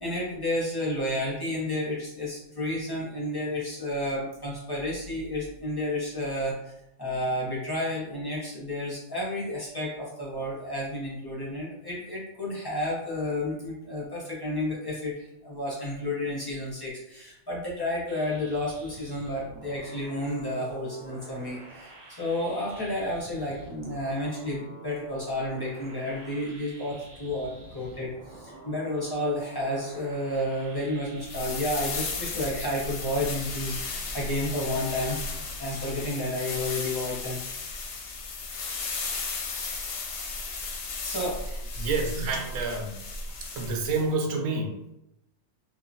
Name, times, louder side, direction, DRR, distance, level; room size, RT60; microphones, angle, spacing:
voice 1, 0.0-6.7 7.0-21.9 22.2-35.2 35.6-37.4 41.0-41.4, left 1 dB, 25° left, -6 dB, 0.5 m, -31 dB
sound 1, 18.1-31.4, right 2 dB, 50° right, 0.5 m, -48 dB
sound 2, 31.2-44.1, left 3 dB, 65° left, 0.8 m, -35 dB
voice 2, 41.5-43.0 43.6-44.9, right 3 dB, 90° right, 2 dB, 1.0 m, -29 dB
3.0 x 2.2 x 2.6 m, 0.87 s
omnidirectional pair, 1.4 m